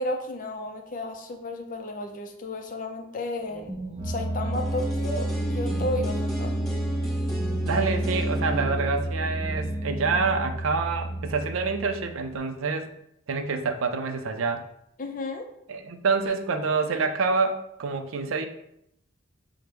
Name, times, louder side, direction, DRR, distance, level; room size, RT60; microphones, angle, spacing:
voice 1, 0.0-3.7 4.0-6.5 15.0-15.5, left 1 dB, 40° left, 4 dB, 0.4 m, -33 dB
sound 1, 3.5-12.3, right 1 dB, 25° right, 0.6 m, -30 dB
sound 2, 4.5-10.4 10.7-10.8, equal, 5° left, 1.0 m, -36 dB
voice 2, 7.6-12.9 13.3-14.6 15.7-18.5, right 4 dB, 80° right, 7 dB, 0.4 m, -27 dB
5.8 x 2.1 x 3.3 m, 0.76 s
head